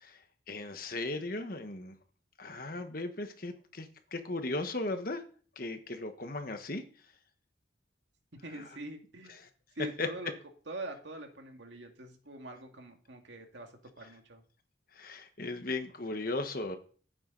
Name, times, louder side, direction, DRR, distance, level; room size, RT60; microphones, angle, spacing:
voice 1, 0.5-1.9 2.4-5.2 5.6-6.8 8.6-8.7 10.0-10.1 15.0-16.8, left 2 dB, 45° left, 7 dB, 1.3 m, -37 dB
voice 2, 8.4-9.4 9.8-10.3 10.7-14.4, right 1 dB, 70° right, 3 dB, 2.1 m, -44 dB
12.0 x 9.2 x 4.0 m, 0.42 s
head